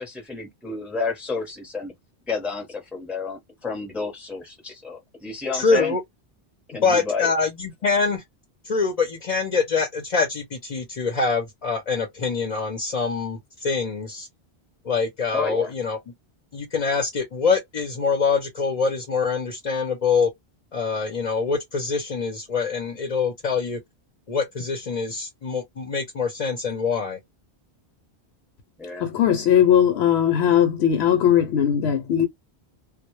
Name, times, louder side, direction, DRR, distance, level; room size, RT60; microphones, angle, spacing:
voice 1, 0.0-1.9 2.3-5.9 6.7-7.3 15.3-15.7 28.8-29.1, left 4 dB, ahead, 0.6 m, -30 dB
voice 2, 5.5-6.0 6.8-8.2 8.6-14.3 14.8-16.0 16.5-20.3 20.7-23.8 24.3-27.2, left 5 dB, 45° left, 0.6 m, -24 dB
voice 3, 29.0-32.3, left 9 dB, 75° left, 0.8 m, -19 dB
2.1 x 2.0 x 2.9 m
omnidirectional pair, 1.1 m